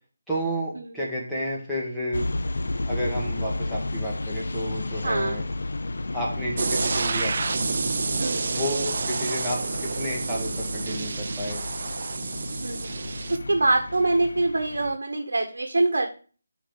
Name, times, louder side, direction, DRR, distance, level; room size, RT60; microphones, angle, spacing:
voice 1, 0.3-2.3 2.9-5.4 6.1-7.5 8.5-11.6, equal, ahead, -8 dB, 1.7 m, -31 dB
sound 1, 2.1-15.0, left 2 dB, 75° left, 0.5 m, -33 dB
voice 2, 5.0-5.4 8.2-8.6 12.6-12.9 13.3-16.1, right 2 dB, 75° right, 4 dB, 1.2 m, -24 dB
sound 2, 6.6-13.4, right 4 dB, 45° right, 0.5 m, -29 dB
7.0 x 4.2 x 5.7 m, 0.39 s
figure-of-eight pair, 170°, 0 cm